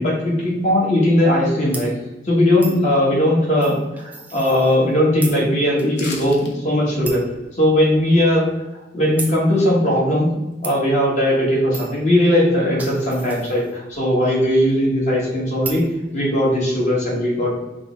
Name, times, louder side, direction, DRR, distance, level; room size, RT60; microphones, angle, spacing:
voice 1, 0.0-1.9 2.2-7.2 7.5-8.5 8.9-10.3 10.6-17.6, left 1 dB, 40° left, -4 dB, 1.2 m, -18 dB
sound 1, 1.7-1.9 2.6-2.9 3.6-4.9 5.2-5.4 5.8-5.9 6.3-6.4 7.0-7.3 7.9-8.0 9.2-9.4 10.6-10.8 11.7-12.0 12.5-14.0 15.6-15.9, right 3 dB, 10° right, 0.3 m, -34 dB
sound 2, 5.9-6.5 6.9-7.0, left 3 dB, 75° left, 0.8 m, -33 dB
5.0 x 2.0 x 4.5 m, 1.1 s
head